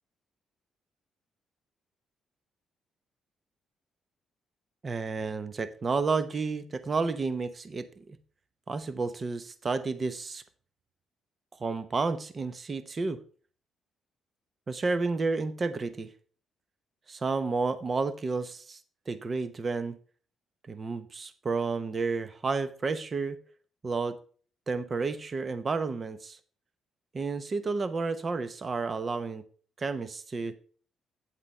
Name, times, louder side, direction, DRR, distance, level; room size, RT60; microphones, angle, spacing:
voice 1, 4.8-8.0 8.7-10.4 11.6-13.2 14.7-16.1 17.1-18.8 19.1-20.0 20.7-23.4 23.8-24.2 24.7-26.4 27.1-29.4 29.8-30.5, right 4 dB, 30° right, 13 dB, 0.9 m, -31 dB
9.1 x 8.1 x 3.3 m, 0.42 s
cardioid pair, 120°, 0 cm